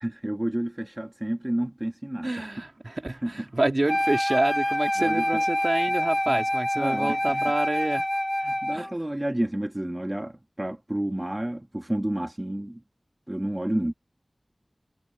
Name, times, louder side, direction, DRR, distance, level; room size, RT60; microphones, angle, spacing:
voice 1, 0.0-2.5 3.2-3.3 5.0-5.2 6.3-6.4 6.8-7.5 8.4-12.8 13.3-13.9, right 1 dB, 25° right, 1.8 m, -30 dB
voice 2, 2.2-8.1 8.7-8.9, right 2 dB, 45° right, 2.7 m, -28 dB
Wind instrument woodwind instrument, 3.9-8.9, equal, 10° left, 2.1 m, -26 dB
wide cardioid pair, 55°, 0 cm